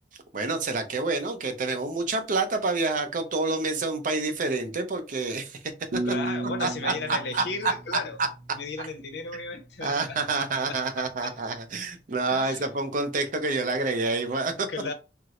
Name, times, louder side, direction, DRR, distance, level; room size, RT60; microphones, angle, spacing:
voice 1, 0.3-5.6 5.9-6.0 6.6-7.7 9.8-14.7, right 3 dB, 50° right, 0.5 m, -28 dB
sound 1, 5.9-8.9, right 2 dB, 90° right, 0.6 m, -34 dB
voice 2, 6.0-8.2 8.5-11.4 12.3-12.7 14.7-14.9, left 4 dB, 70° left, 0.6 m, -35 dB
4.3 x 2.0 x 2.4 m
head